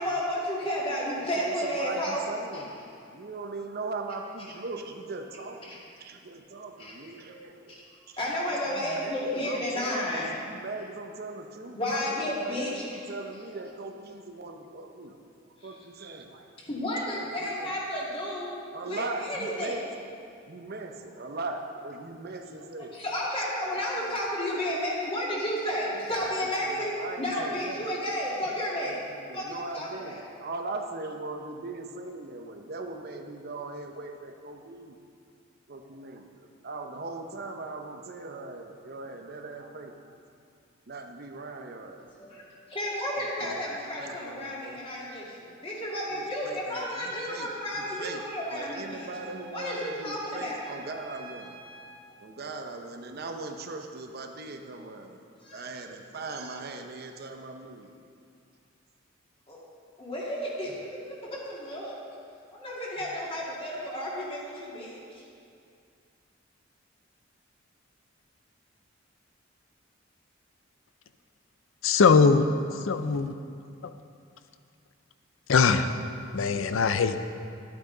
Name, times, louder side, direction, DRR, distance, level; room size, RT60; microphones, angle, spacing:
voice 1, 0.0-2.2 2.5-2.6 5.6-5.8 6.8-7.0 7.7-7.8 8.2-10.3 11.7-12.8 16.6-18.5 18.8-19.8 22.9-28.9 29.3-30.2 42.2-42.4 42.7-45.4 45.6-49.1 49.5-50.6 55.4-55.7 59.5-59.6 60.0-62.0 62.5-65.2, left 1 dB, 30° left, -6 dB, 2.2 m, -32 dB
voice 2, 1.2-7.7 8.1-8.2 8.5-15.1 15.6-16.5 17.2-17.7 18.7-19.8 20.5-23.0 23.7-24.2 26.2-26.3 26.6-27.9 28.8-28.9 29.2-35.0 35.7-36.3 36.6-40.2 40.9-42.1 43.2-44.8 46.1-48.2 48.5-51.6 52.2-55.2 55.5-57.9, right 3 dB, 55° right, 4 dB, 0.8 m, -40 dB
Trumpet, 46.8-52.0, right 2 dB, 30° right, 1.8 m, -47 dB
voice 3, 71.8-72.5 72.8-73.4 75.5-75.9 76.3-77.2, left 5 dB, 80° left, 10 dB, 0.5 m, -21 dB
12.0 x 8.6 x 3.9 m, 2.4 s
head